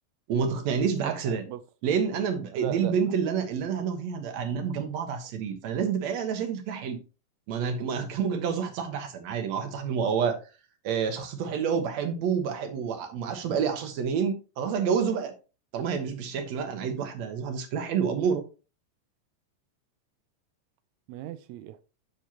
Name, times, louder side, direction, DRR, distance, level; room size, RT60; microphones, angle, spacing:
voice 1, 0.3-1.4 1.8-7.0 7.5-10.4 10.8-15.3 15.7-18.4, right 6 dB, 60° right, 2.2 m, -28 dB
voice 2, 0.9-1.6 2.5-3.0 21.1-21.8, right 13 dB, 90° right, 1.6 m, -37 dB
7.6 x 6.6 x 2.9 m
omnidirectional pair, 3.9 m